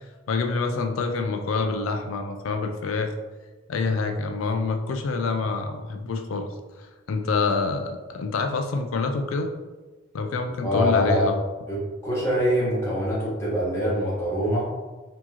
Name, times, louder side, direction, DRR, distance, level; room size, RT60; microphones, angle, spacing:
voice 1, 0.3-3.1 3.7-6.5 7.1-9.5 10.1-11.4, left 4 dB, 85° left, 5 dB, 0.4 m, -26 dB
voice 2, 10.6-11.3 11.7-11.8 12.0-14.7, equal, 15° left, -8 dB, 1.4 m, -24 dB
4.4 x 2.8 x 2.9 m, 1.2 s
head